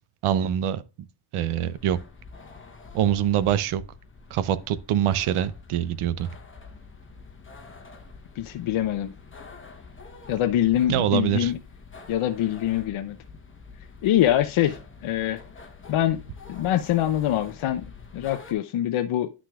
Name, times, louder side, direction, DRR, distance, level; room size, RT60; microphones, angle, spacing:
voice 1, 0.2-0.8 1.3-2.0 2.9-3.8 4.3-6.3 10.9-11.5, right 10 dB, 80° right, 0.7 m, -24 dB
sound 1, 1.5-18.5, left 4 dB, 25° left, 1.0 m, -46 dB
voice 2, 8.4-9.1 10.3-11.6 12.1-13.2 14.0-15.4 15.9-16.2 16.5-17.9 18.1-19.3, left 12 dB, 75° left, 0.7 m, -24 dB
9.8 x 6.1 x 2.3 m
cardioid pair, 115°, 50 cm